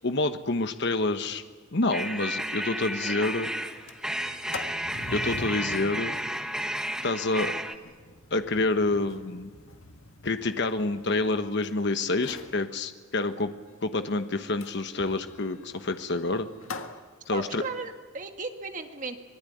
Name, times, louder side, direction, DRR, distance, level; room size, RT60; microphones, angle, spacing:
voice 1, 0.0-1.4 1.7-3.5 5.1-6.2 7.0-7.5 8.3-9.5 10.2-13.5 13.8-16.5 17.3-17.6, left 2 dB, 55° left, 8 dB, 1.2 m, -28 dB
sound 1, 1.9-7.8, right 1 dB, 5° right, 1.1 m, -32 dB
Sliding door, 2.1-2.2 2.6-2.7 3.0-3.3 3.7-11.7 12.1-12.6 14.6-17.0, left 3 dB, 75° left, 1.8 m, -43 dB
voice 2, 17.3-19.2, right 4 dB, 40° right, 5 dB, 1.8 m, -36 dB
25.5 x 20.0 x 9.4 m, 1.5 s
head